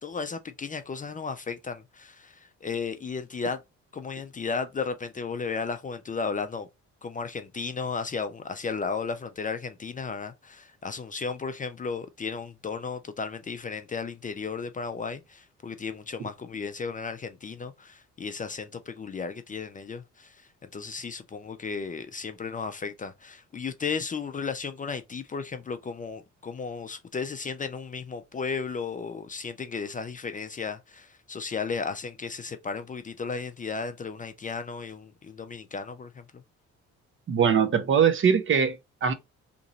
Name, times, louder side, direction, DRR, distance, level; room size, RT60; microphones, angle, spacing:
voice 1, 0.0-3.6 3.9-6.7 7.0-36.4, left 5 dB, 25° left, 0.4 m, -34 dB
voice 2, 37.3-39.1, right 7 dB, 40° right, 0.6 m, -22 dB
3.0 x 2.6 x 4.0 m
cardioid pair, 90°, 30 cm